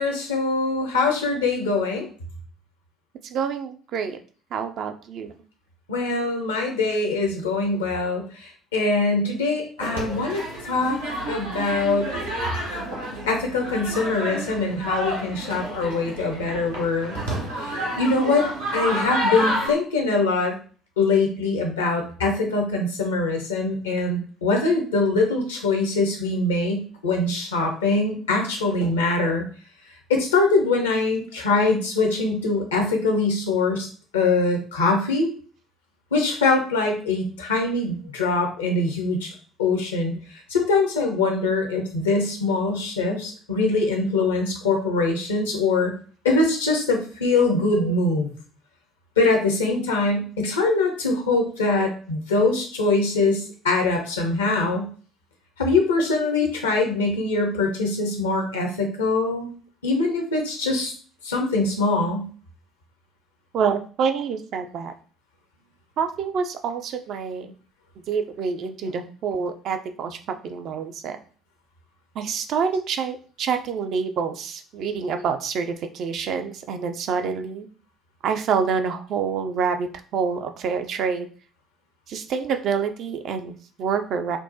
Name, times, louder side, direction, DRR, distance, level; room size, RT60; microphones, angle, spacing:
voice 1, 0.0-2.1 5.9-11.0 11.3-12.1 13.3-17.2 17.5-18.5 18.7-20.6 21.0-29.4 30.1-33.9 34.1-35.3 36.1-39.3 39.6-40.2 40.5-45.9 46.2-48.3 49.2-54.9 55.6-59.5 59.8-60.9 61.2-62.3, left 3 dB, 80° left, 3 dB, 0.7 m, -23 dB
voice 2, 3.2-4.2 4.5-5.3 11.1-11.3 18.5-18.8 31.1-31.3 47.7-47.9 51.8-51.9 56.4-56.5 63.5-64.9 66.0-67.5 68.1-71.2 72.2-77.7 78.2-81.3 82.1-84.4, right 6 dB, 55° right, 6 dB, 0.4 m, -27 dB
sound 1, 9.8-19.7, equal, 85° right, 0.9 m, -30 dB
4.4 x 2.0 x 2.6 m, 0.41 s
figure-of-eight pair, 50°, 0 cm